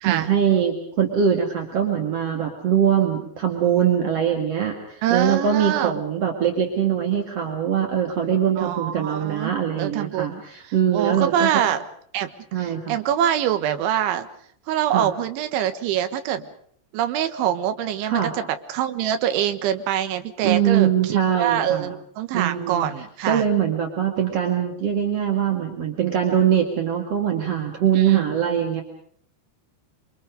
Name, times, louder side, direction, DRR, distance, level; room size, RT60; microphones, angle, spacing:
voice 1, 0.0-11.5 12.5-12.9 14.9-15.1 18.0-18.3 20.4-21.9 22.3-22.9 23.2-28.8, right 9 dB, 50° right, 3 dB, 2.0 m, -22 dB
voice 2, 5.0-6.0 8.6-10.4 10.9-11.8 12.1-12.3 12.6-14.3 14.7-16.5 16.9-23.5 28.0-28.4, right 10 dB, 75° right, 9 dB, 3.7 m, -25 dB
28.0 x 24.5 x 5.2 m, 0.62 s
omnidirectional pair, 5.7 m